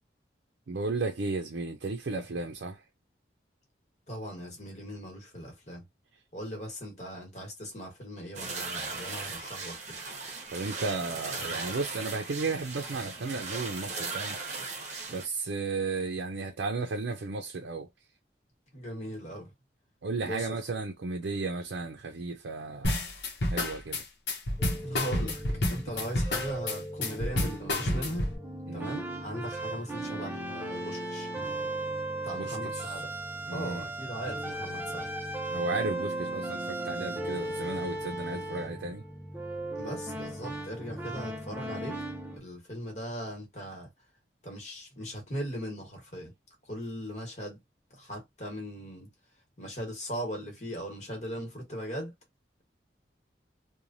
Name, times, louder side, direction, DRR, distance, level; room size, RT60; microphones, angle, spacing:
voice 1, 0.7-2.8 10.5-14.4 15.1-17.9 20.0-23.0 23.5-24.0 28.7-29.0 32.4-33.0 33.5-33.9 35.5-39.0, right 3 dB, 80° right, 0.5 m, -34 dB
voice 2, 4.1-5.8 6.3-9.8 18.7-19.5 20.2-20.5 24.8-25.4 25.7-28.4 28.7-31.3 32.2-33.1 33.5-35.1 39.7-42.0 42.3-43.9 44.4-46.3 46.6-47.6 47.9-49.1 49.6-52.1, equal, 40° left, 1.3 m, -39 dB
sound 1, 8.3-15.2, right 4 dB, 40° right, 0.8 m, -38 dB
sound 2, 22.8-28.4, left 1 dB, 75° left, 0.9 m, -29 dB
sound 3, 24.6-42.4, right 1 dB, 10° right, 0.5 m, -37 dB
3.1 x 2.2 x 2.6 m
head